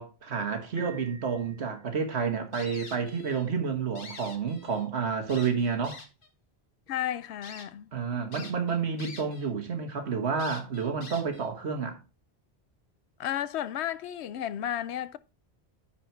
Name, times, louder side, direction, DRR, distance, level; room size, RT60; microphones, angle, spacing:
voice 1, 0.0-6.0 7.9-12.0, right 6 dB, 80° right, 1.6 m, -30 dB
Piano, 0.8-2.2, right 5 dB, 25° left, 1.3 m, -49 dB
sound 1, 2.5-3.5 3.8-4.9 5.3-6.3 6.9-7.0 7.4-7.7 8.3-9.5 9.8-9.9 10.4-11.5, left 3 dB, 55° left, 1.4 m, -46 dB
voice 2, 6.9-7.9 13.2-15.2, left 11 dB, 90° left, 0.9 m, -33 dB
10.0 x 4.4 x 4.4 m
omnidirectional pair, 1.1 m